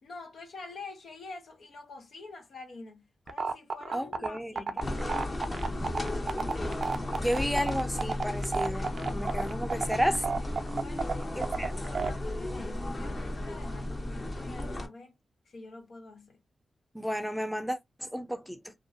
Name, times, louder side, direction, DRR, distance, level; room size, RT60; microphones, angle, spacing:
voice 1, 0.0-4.9 10.8-15.1 15.5-16.4, left 3 dB, 70° left, 0.7 m, -47 dB
sound 1, 3.3-12.1, right 4 dB, 60° right, 0.4 m, -31 dB
voice 2, 3.9-4.5 7.2-8.9 9.1-10.3 11.4-11.7 16.9-18.7, equal, ahead, 0.6 m, -32 dB
sound 2, 4.8-14.9, left 1 dB, 40° left, 1.0 m, -34 dB
2.6 x 2.2 x 2.5 m
supercardioid pair, 40°, 0 cm